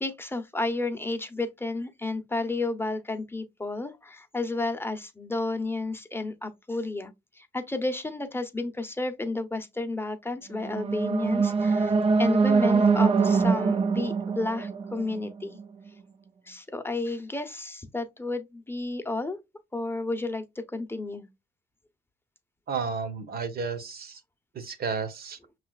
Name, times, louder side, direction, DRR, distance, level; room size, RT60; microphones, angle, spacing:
voice 1, 0.0-15.6 16.4-19.4 19.7-20.4 20.7-21.3, left 2 dB, 10° left, 0.8 m, -32 dB
sound 1, 10.5-15.6, right 5 dB, 30° right, 0.4 m, -24 dB
voice 2, 22.7-24.2 24.5-25.4, right 5 dB, 50° right, 0.9 m, -32 dB
5.6 x 3.2 x 2.3 m
cardioid pair, 90°, 20 cm